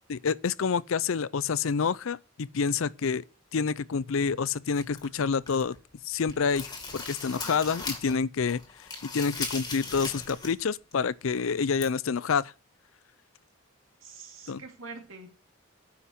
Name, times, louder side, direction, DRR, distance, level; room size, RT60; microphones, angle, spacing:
voice 1, 0.1-3.2 3.5-5.8 6.0-8.9 9.1-12.5 14.5-14.6, left 5 dB, 75° left, 0.5 m, -28 dB
sound 1, 4.7-5.8 6.1-8.2 8.5-10.6 10.9-11.0 11.8-11.9, left 3 dB, 20° left, 2.1 m, -38 dB
voice 2, 14.0-15.3, right 4 dB, 75° right, 2.6 m, -45 dB
9.4 x 5.9 x 8.3 m
head